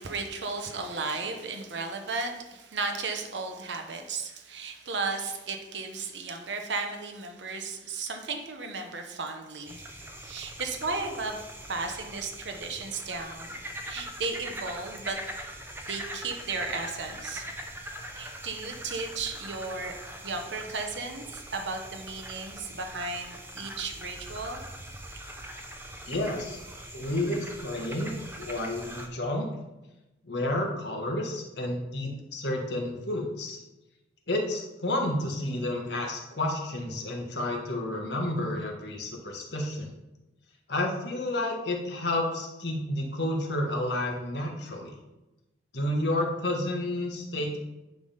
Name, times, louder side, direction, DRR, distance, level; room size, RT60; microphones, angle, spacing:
voice 1, 0.0-9.9 10.2-11.4 11.7-15.2 15.9-17.4 18.1-19.9 20.2-24.6, right 4 dB, 80° right, 4 dB, 1.0 m, -35 dB
sound 1, 9.7-29.1, right 1 dB, 10° right, 0.7 m, -42 dB
voice 2, 26.0-26.6 26.9-29.5 30.2-33.6 34.3-39.9 40.7-44.9 45.7-47.6, left 1 dB, 70° left, 0 dB, 1.5 m, -30 dB
9.9 x 3.5 x 5.6 m, 1.0 s
head